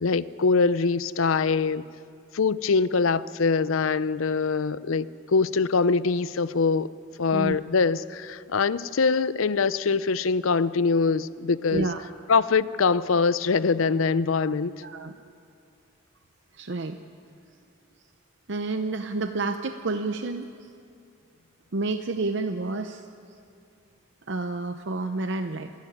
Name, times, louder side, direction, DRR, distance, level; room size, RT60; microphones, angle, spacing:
voice 1, 0.0-1.8 2.3-6.9 7.2-11.9 12.3-14.7, left 4 dB, 80° left, 17 dB, 0.6 m, -23 dB
voice 2, 11.7-12.0 14.8-15.1 16.5-17.0 18.5-20.5 21.7-23.0 24.3-25.7, right 3 dB, 60° right, 7 dB, 0.7 m, -29 dB
25.5 x 11.5 x 9.7 m, 2.5 s
head